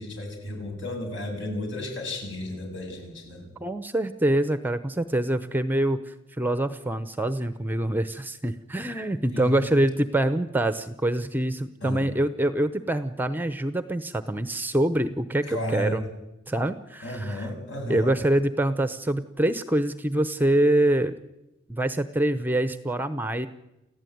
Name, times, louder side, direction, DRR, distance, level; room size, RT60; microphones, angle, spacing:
voice 1, 0.0-3.5 9.3-9.8 11.8-12.1 15.4-16.0 17.0-18.1, left 1 dB, 60° left, 2 dB, 7.6 m, -33 dB
voice 2, 3.6-16.0 16.5-17.5 17.9-21.1 21.7-23.5, right 1 dB, 10° right, 12 dB, 0.8 m, -25 dB
29.0 x 15.0 x 9.4 m, 0.97 s
head